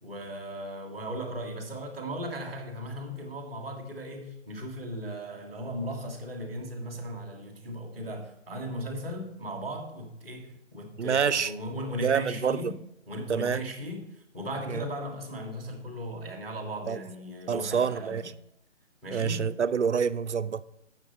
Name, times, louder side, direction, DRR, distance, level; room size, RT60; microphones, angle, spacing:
voice 1, 0.0-18.4 19.0-19.5, equal, ahead, 0.8 m, -37 dB
voice 2, 11.0-11.5 12.0-12.7 13.3-13.6 14.7-14.8 16.9-17.0 17.5-18.2 19.1-20.6, right 6 dB, 70° right, 0.6 m, -27 dB
8.4 x 6.5 x 7.9 m
figure-of-eight pair, 145°, 37 cm